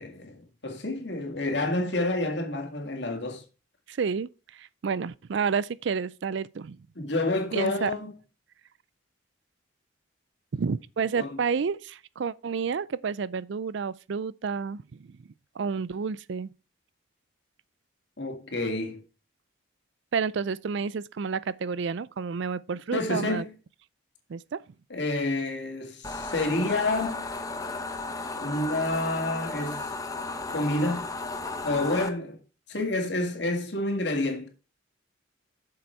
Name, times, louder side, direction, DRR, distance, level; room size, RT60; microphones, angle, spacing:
voice 1, 0.0-3.4 7.0-8.1 11.2-11.4 18.2-19.0 22.9-23.5 24.9-27.3 28.3-29.9 30.5-31.1 31.6-32.4 32.7-34.5, left 2 dB, 55° left, 2.1 m, -29 dB
voice 2, 3.9-6.8 7.5-7.9 10.5-15.2 15.6-16.5 20.1-23.4 24.3-24.6, right 5 dB, 60° right, 0.4 m, -30 dB
sound 1, 26.0-32.1, left 3 dB, 15° left, 0.9 m, -34 dB
7.7 x 6.9 x 4.5 m
head